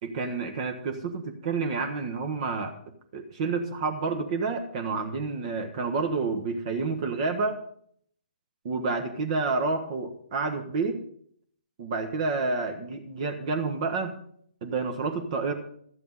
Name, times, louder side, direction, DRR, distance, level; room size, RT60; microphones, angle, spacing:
voice 1, 0.0-2.7 3.1-7.6 8.6-11.0 11.8-14.1 14.6-15.5, right 4 dB, 40° right, 5 dB, 1.3 m, -29 dB
13.0 x 9.1 x 5.5 m, 0.62 s
figure-of-eight pair, 130°, 6 cm